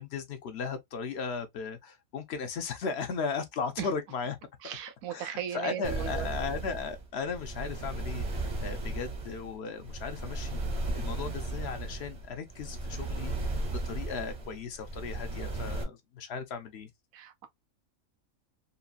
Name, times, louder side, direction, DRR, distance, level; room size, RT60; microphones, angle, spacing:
voice 1, 0.0-4.4 5.1-10.6 10.9-13.3 13.6-16.9, left 5 dB, 60° left, 0.8 m, -36 dB
voice 2, 4.6-6.3 17.1-17.5, right 10 dB, 85° right, 1.0 m, -37 dB
sound 1, 5.8-15.8, right 2 dB, 35° right, 0.6 m, -35 dB
3.0 x 2.7 x 2.3 m
omnidirectional pair, 1.5 m